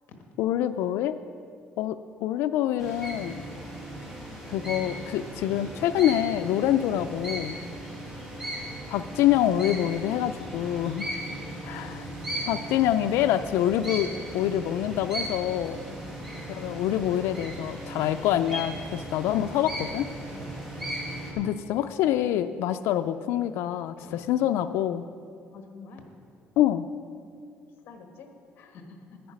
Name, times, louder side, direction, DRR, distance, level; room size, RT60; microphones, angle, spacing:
voice 1, 0.4-1.2 1.8-3.4 4.5-7.6 8.9-11.1 11.6-12.1 12.5-14.1 14.3-15.8 16.5-20.1 21.4-25.0 26.6-26.9, left 12 dB, 90° left, 9 dB, 0.3 m, -26 dB
sound 1, 2.8-21.3, right 1 dB, 5° right, 1.8 m, -37 dB
voice 2, 25.5-26.1 27.8-28.3 28.6-29.2, left 4 dB, 60° left, 4 dB, 1.3 m, -47 dB
11.0 x 9.4 x 5.1 m, 2.3 s
cardioid pair, 165°, 4 cm